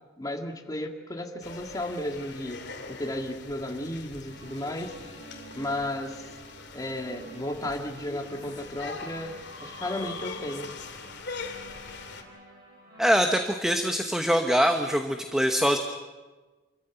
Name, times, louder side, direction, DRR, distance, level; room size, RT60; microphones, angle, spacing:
voice 1, 0.2-2.6 3.0-4.9 5.6-6.2 6.7-9.3 9.6-10.7, left 1 dB, 20° left, 3 dB, 2.1 m, -33 dB
sound 1, 1.4-12.2, left 4 dB, 60° left, 2.6 m, -42 dB
sound 2, 4.3-13.4, right 1 dB, 60° right, 7.7 m, -50 dB
voice 2, 13.0-15.8, equal, 5° right, 5 dB, 1.1 m, -23 dB
26.5 x 14.5 x 9.2 m, 1.3 s
head